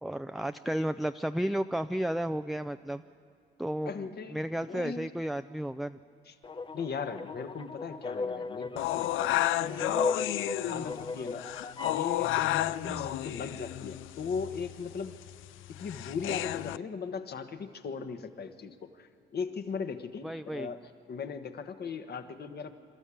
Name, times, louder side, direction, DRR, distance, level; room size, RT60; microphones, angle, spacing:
voice 1, 0.0-3.0 3.6-6.0 10.7-10.9 12.8-13.1 20.2-20.7, right 1 dB, ahead, 8 dB, 0.4 m, -33 dB
voice 2, 3.8-5.0 6.3-6.4 6.7-10.1 10.7-11.5 11.9-15.2 15.8-22.7, left 5 dB, 55° left, 7 dB, 1.4 m, -38 dB
sound 1, 6.4-12.1, left 3 dB, 25° left, 0.8 m, -36 dB
sound 2, 8.8-16.8, left 15 dB, 80° left, 0.4 m, -32 dB
27.0 x 13.0 x 8.6 m, 2.3 s
cardioid pair, 90°, 20 cm